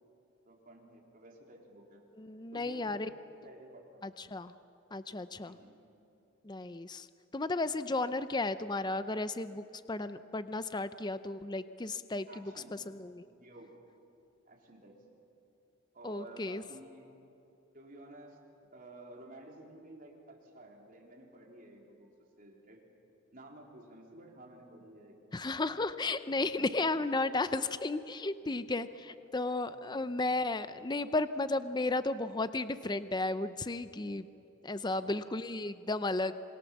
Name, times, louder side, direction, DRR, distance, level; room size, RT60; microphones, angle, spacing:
voice 1, 0.4-2.0 2.5-3.1 3.4-4.2 5.4-5.7 12.3-12.8 13.2-13.7 14.5-15.0 15.9-17.1 17.7-18.4 18.7-22.1 22.4-22.8 23.3-25.2 26.3-26.8 29.7-30.4 34.8-35.1, right 1 dB, 40° right, -1 dB, 3.8 m, -53 dB
voice 2, 2.2-3.1 4.0-4.5 4.9-5.5 6.4-7.1 7.3-13.3 16.0-16.6 25.3-34.3 34.6-36.3, left 2 dB, 20° left, 12 dB, 0.5 m, -34 dB
27.0 x 22.5 x 7.2 m, 2.8 s
head